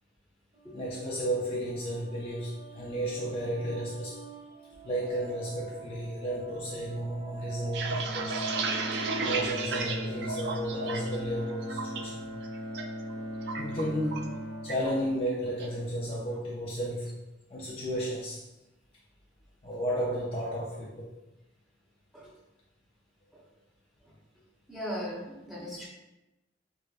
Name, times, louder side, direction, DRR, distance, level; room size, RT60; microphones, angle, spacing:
sound 1, 0.5-16.0, right 4 dB, 45° right, 1.0 m, -48 dB
voice 1, 0.7-4.2 4.8-8.5 9.2-12.3 13.6-17.2 17.5-18.4 19.6-21.1, equal, 30° left, -5 dB, 0.4 m, -33 dB
sound 2, 7.5-11.2 11.5-12.0 12.4-12.8 13.1-14.4 14.7-14.9 15.3-15.7, right 4 dB, 60° right, 0.3 m, -33 dB
Bowed string instrument, 7.9-16.1, equal, 85° left, 0.7 m, -39 dB
voice 2, 24.7-25.9, equal, ahead, -7 dB, 0.8 m, -37 dB
4.5 x 2.1 x 2.4 m, 0.99 s
head